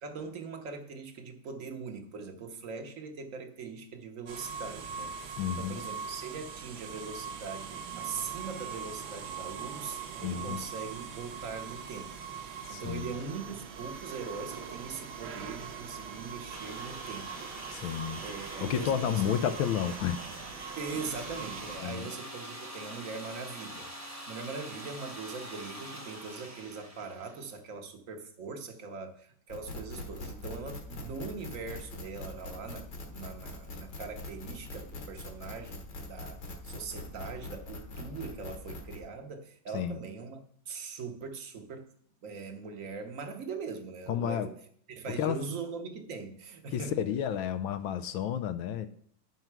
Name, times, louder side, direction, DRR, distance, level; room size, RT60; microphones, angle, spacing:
voice 1, 0.0-12.1 12.4-18.0 18.2-19.6 20.8-41.9 42.2-44.6 44.9-47.0, right 4 dB, 45° right, 5 dB, 1.2 m, -41 dB
sound 1, 4.3-21.8, right 6 dB, 70° right, 1.6 m, -42 dB
voice 2, 5.4-5.8 10.2-10.6 12.7-13.2 17.7-18.2 18.6-20.5 21.8-22.1 39.7-40.0 44.1-44.5 45.2-45.4 46.7-48.9, left 9 dB, 75° left, 11 dB, 1.3 m, -31 dB
sound 2, 16.5-27.6, right 1 dB, 10° right, 0.9 m, -44 dB
sound 3, 29.5-39.0, left 2 dB, 55° left, 1.9 m, -42 dB
8.9 x 5.7 x 5.9 m, 0.62 s
omnidirectional pair, 2.3 m